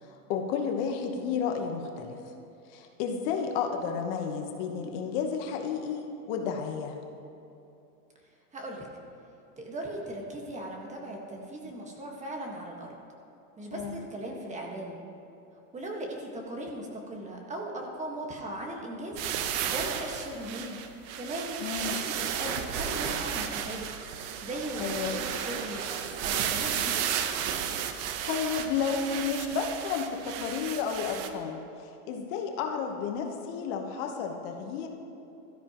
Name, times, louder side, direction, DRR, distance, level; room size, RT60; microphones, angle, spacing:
voice 1, 0.3-2.2 2.7-7.0 13.7-14.0 21.6-22.0 24.8-25.2 28.3-31.6 32.1-34.9, left 6 dB, 50° left, 3 dB, 1.3 m, -31 dB
voice 2, 8.5-8.9 9.6-12.9 13.6-15.0 15.7-19.2 19.7-20.8 21.2-21.6 21.9-23.9 24.4-25.9 26.2-27.0, right 1 dB, 15° right, 0 dB, 1.6 m, -38 dB
sound 1, 19.2-31.3, right 8 dB, 50° right, 1.1 m, -33 dB
16.0 x 13.0 x 3.1 m, 2.8 s
supercardioid pair, 130°, 45 cm